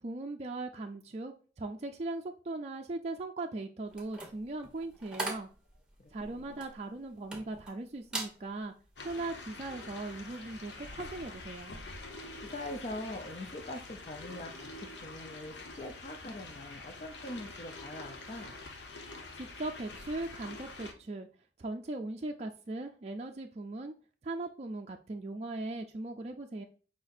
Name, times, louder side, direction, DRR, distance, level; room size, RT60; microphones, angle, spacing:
voice 1, 0.0-5.5 6.1-8.7 9.0-11.7 19.4-21.3 21.6-23.9 24.2-26.6, right 2 dB, 35° right, 2 dB, 0.4 m, -39 dB
sound 1, 3.9-7.7 8.0-8.4 8.8-9.1, right 2 dB, 5° right, 1.0 m, -40 dB
voice 2, 6.0-6.5 12.5-14.7 15.0-18.5, left 1 dB, 40° left, 3 dB, 0.6 m, -43 dB
sound 2, 9.0-20.9, left 3 dB, 75° left, 0.9 m, -46 dB
5.0 x 4.0 x 2.6 m, 0.38 s
head